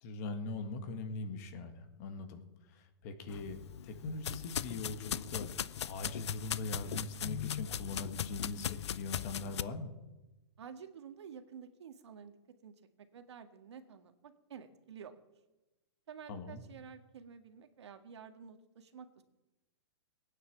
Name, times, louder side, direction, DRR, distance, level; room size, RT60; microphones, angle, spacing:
voice 1, 0.0-2.4 2.7-9.9 16.3-16.6, left 3 dB, 35° left, 7 dB, 1.9 m, -41 dB
sound 1, 3.3-9.6, left 9 dB, 90° left, 0.6 m, -39 dB
voice 2, 10.6-12.3 12.6-12.7 13.1-15.2 16.1-19.2, right 7 dB, 80° right, 7 dB, 1.8 m, -51 dB
19.5 x 9.4 x 7.5 m, 1.0 s
hypercardioid pair, 165°, 14 cm